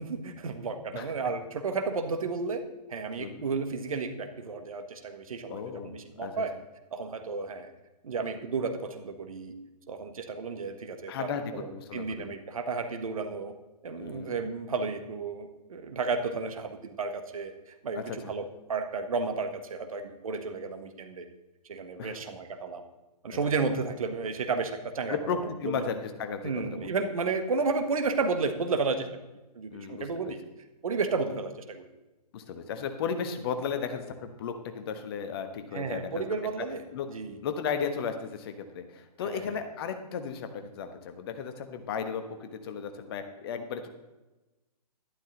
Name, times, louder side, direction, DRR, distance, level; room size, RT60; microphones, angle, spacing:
voice 1, 0.0-2.6 2.9-6.5 6.9-7.7 8.0-9.5 9.9-13.5 13.8-21.3 21.7-22.8 23.2-25.8 26.4-29.1 29.5-30.4 30.8-31.9 35.7-37.4 39.2-39.6, right 4 dB, 60° right, 7 dB, 1.4 m, -32 dB
voice 2, 5.5-6.4 11.1-12.3 14.0-14.3 17.9-18.2 22.0-22.2 25.1-26.9 29.7-30.3 32.3-36.2 36.6-37.1 37.4-43.9, left 6 dB, 35° left, 8 dB, 1.2 m, -35 dB
12.0 x 11.5 x 3.9 m, 1.1 s
figure-of-eight pair, 130°, 21 cm